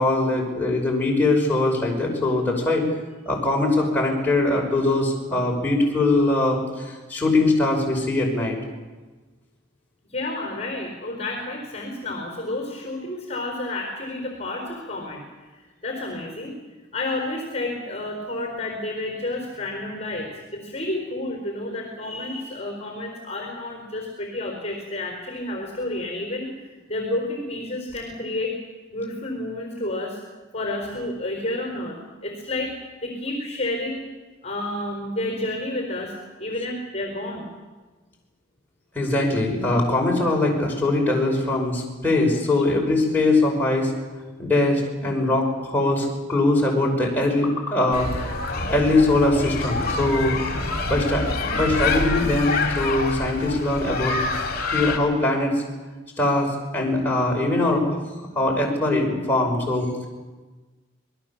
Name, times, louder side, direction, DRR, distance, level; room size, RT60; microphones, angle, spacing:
voice 1, 0.0-2.8 3.3-8.6 38.9-43.9 44.4-48.3 48.7-54.1 54.7-55.6 56.2-58.0 58.3-60.1, left 2 dB, 10° left, -2 dB, 5.7 m, -22 dB
voice 2, 10.1-15.2 15.8-16.6 16.9-26.5 26.9-28.5 28.9-30.2 30.5-32.7 33.0-34.0 34.4-36.1 36.4-37.5 42.6-42.7, left 2 dB, 30° left, 2 dB, 4.3 m, -30 dB
sound 1, 47.9-55.0, left 3 dB, 45° left, 3.4 m, -26 dB
27.0 x 21.0 x 7.3 m, 1.3 s
head